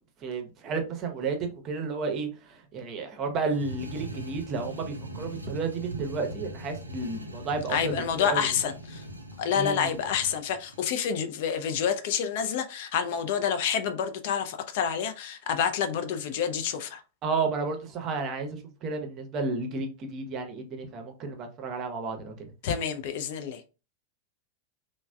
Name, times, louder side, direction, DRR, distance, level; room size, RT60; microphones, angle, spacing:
voice 1, 0.2-8.4 9.5-9.9 17.2-22.5, right 4 dB, 35° right, 0.6 m, -32 dB
sound 1, 3.5-10.9, right 1 dB, 85° right, 0.4 m, -41 dB
voice 2, 7.7-9.0 9.4-17.0 22.6-23.6, left 8 dB, 50° left, 0.3 m, -28 dB
3.2 x 2.0 x 2.2 m
figure-of-eight pair, 90°, 0 cm